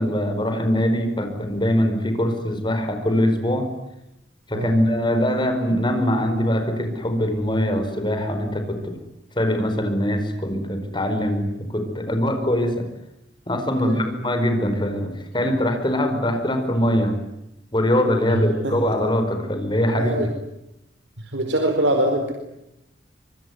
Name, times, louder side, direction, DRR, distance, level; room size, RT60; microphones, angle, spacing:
voice 1, 0.0-3.7 4.5-9.0 9.3-12.9 13.5-17.2 17.7-20.3, equal, 25° left, 7 dB, 4.9 m, -22 dB
voice 2, 13.8-14.2 18.3-18.9 19.9-20.3 21.2-22.3, right 1 dB, 80° right, 4 dB, 4.4 m, -24 dB
25.5 x 24.5 x 9.5 m, 0.86 s
head